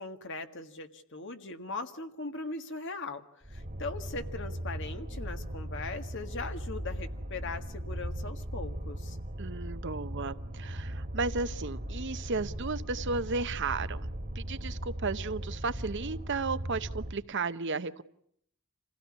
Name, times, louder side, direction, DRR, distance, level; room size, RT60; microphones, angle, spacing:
voice 1, 0.0-3.2 3.5-9.2, left 3 dB, 60° left, 7 dB, 1.7 m, -40 dB
sound 1, 3.4-17.1, right 1 dB, 40° right, 1.7 m, -38 dB
voice 2, 9.4-14.0 14.3-18.0, right 4 dB, 55° right, 12 dB, 0.9 m, -34 dB
27.5 x 16.5 x 9.8 m, 0.71 s
head